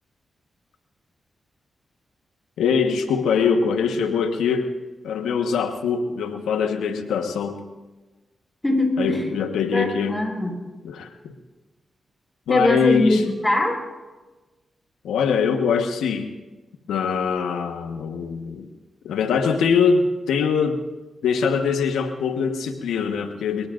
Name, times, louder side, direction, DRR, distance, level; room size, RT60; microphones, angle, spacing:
voice 1, 2.6-4.7 5.0-7.6 9.0-10.2 10.8-11.3 12.5-13.2 15.0-16.3 16.9-18.7 19.0-20.8 21.2-23.7, left 6 dB, 90° left, 6 dB, 1.3 m, -23 dB
voice 2, 8.6-9.2 9.7-10.6 12.5-13.8, left 1 dB, 15° left, 1 dB, 6.8 m, -22 dB
25.0 x 22.0 x 2.6 m, 1.2 s
supercardioid pair, 45°, 0 cm